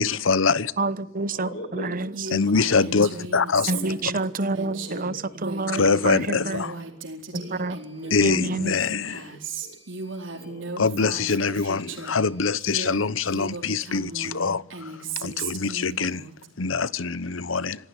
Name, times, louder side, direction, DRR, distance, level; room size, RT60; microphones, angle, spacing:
voice 1, 0.0-0.7 2.3-3.7 5.8-6.7 8.1-9.1 10.8-14.6 15.2-16.2 16.6-17.8, left 4 dB, 75° left, 0.9 m, -23 dB
voice 2, 0.8-2.3 3.7-7.0 7.3-9.0, right 2 dB, 45° right, 1.0 m, -29 dB
voice 3, 1.3-2.6 3.6-4.0 4.7-5.4 7.3-7.8 8.0-9.8 10.3-10.7, equal, 60° left, 5.2 m, -42 dB
Female speech woman speaking, 2.1-12.2 12.6-16.5, right 3 dB, 70° right, 4.4 m, -36 dB
sound 1, 2.4-2.6 7.4-8.5 9.4-10.5 11.4-12.5, right 1 dB, 25° left, 6.6 m, -58 dB
26.0 x 17.5 x 9.9 m
head